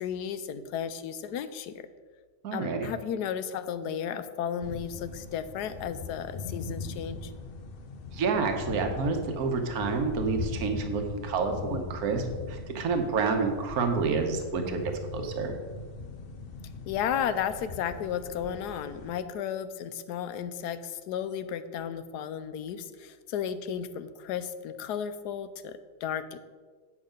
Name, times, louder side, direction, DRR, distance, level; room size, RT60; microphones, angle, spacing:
voice 1, 0.0-1.8 2.5-7.3 16.9-26.4, left 8 dB, 90° left, 12 dB, 1.2 m, -34 dB
voice 2, 2.4-2.9 8.1-15.5, right 4 dB, 65° right, 5 dB, 1.5 m, -29 dB
sound 1, 4.6-19.2, left 4 dB, 55° left, 0.6 m, -40 dB
8.5 x 7.3 x 5.1 m, 1.5 s
omnidirectional pair, 1.7 m